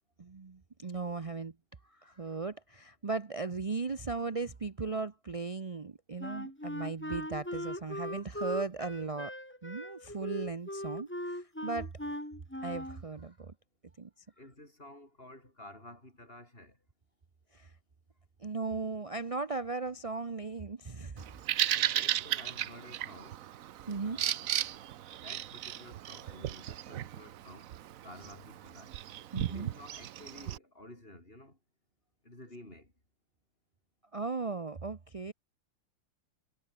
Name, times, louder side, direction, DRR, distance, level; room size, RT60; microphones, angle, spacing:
voice 1, 0.2-1.5 1.8-9.3 9.6-11.9 12.6-13.5 14.0-14.1 17.5-17.7 18.4-21.2 23.9-24.2 29.3-29.7 34.1-35.3, right 4 dB, 40° right, 0.4 m, -37 dB
Wind instrument woodwind instrument, 6.2-13.0, left 1 dB, 5° left, 2.9 m, -39 dB
voice 2, 14.4-16.8 21.7-23.4 24.0-27.7 28.0-28.9 29.5-31.6 32.2-32.9, left 1 dB, 30° left, 7.0 m, -52 dB
Bird vocalization bird call bird song, 21.2-30.6, right 12 dB, 65° right, 0.9 m, -35 dB
omnidirectional pair, 2.0 m